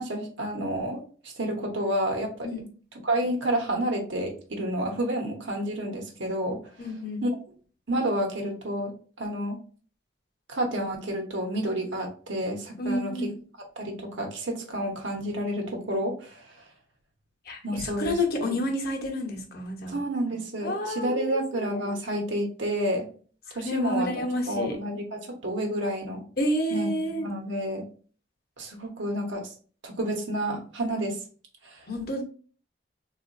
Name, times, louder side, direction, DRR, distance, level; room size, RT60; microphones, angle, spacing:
voice 1, 0.0-2.3 3.0-6.6 7.2-7.3 7.9-8.9 9.2-9.6 10.5-13.3 13.8-16.4 17.6-18.1 18.4-18.6 19.9-23.1 23.5-24.1 24.5-26.2 26.7-27.9 28.6-29.5 29.8-31.2 31.6-31.8, right 1 dB, 75° right, 2 dB, 0.9 m, -30 dB
voice 2, 6.8-7.3 12.8-13.3 17.5-20.0 20.6-22.0 23.5-24.8 26.4-27.3 31.9-32.2, left 1 dB, 50° left, 2 dB, 0.8 m, -30 dB
3.7 x 2.4 x 2.5 m, 0.41 s
head